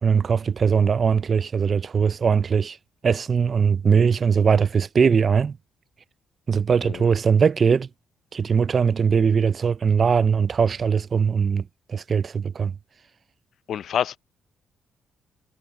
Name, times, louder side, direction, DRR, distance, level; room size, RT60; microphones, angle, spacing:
voice 1, 0.0-2.8 3.0-5.6 6.5-7.9 8.3-11.6 11.9-12.7, right 6 dB, 45° right, 0.5 m, -20 dB
voice 2, 13.7-14.2, left 9 dB, 65° left, 0.5 m, -26 dB
cardioid pair, 90°, 0 cm